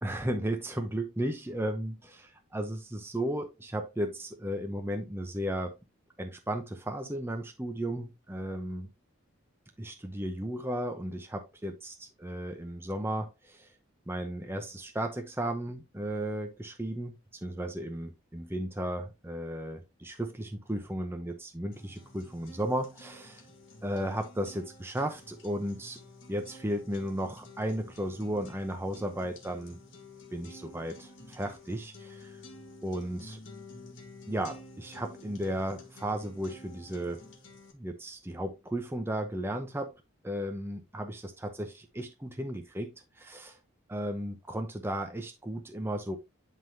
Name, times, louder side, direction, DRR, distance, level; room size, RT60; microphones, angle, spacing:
voice 1, 0.0-5.7 6.2-8.9 9.8-13.7 14.1-17.2 17.4-23.4 23.8-26.0 26.3-29.8 30.3-32.4 32.8-33.4 34.3-37.3 37.7-39.9 40.2-43.6 43.9-46.2, right 1 dB, 10° right, 0.7 m, -35 dB
sound 1, 21.7-37.7, left 2 dB, 65° left, 1.7 m, -51 dB
11.0 x 3.7 x 2.7 m
head